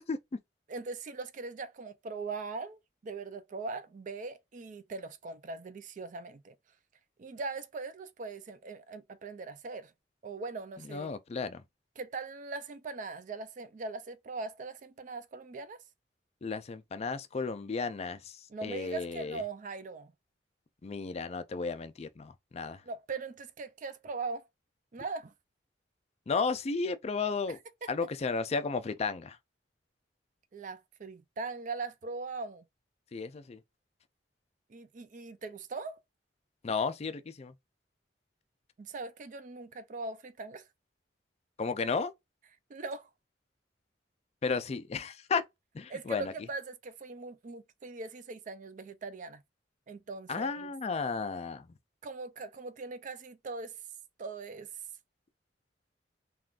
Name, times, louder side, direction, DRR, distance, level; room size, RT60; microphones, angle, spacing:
voice 1, 0.7-6.5 7.2-9.9 10.2-11.1 12.0-15.8 18.5-20.1 22.8-24.5 24.9-25.3 27.5-27.9 30.5-32.6 34.7-36.0 38.8-40.7 42.7-43.1 45.9-49.4 49.9-50.7 52.0-53.8 54.2-54.7, right 3 dB, 45° right, 0.4 m, -40 dB
voice 2, 10.9-11.6 16.4-19.4 20.8-22.8 26.3-27.6 27.9-29.4 33.1-33.6 36.6-37.5 41.6-42.1 44.4-45.4 45.7-46.3 50.3-51.7, left 4 dB, 35° left, 0.4 m, -33 dB
3.6 x 2.4 x 2.4 m
head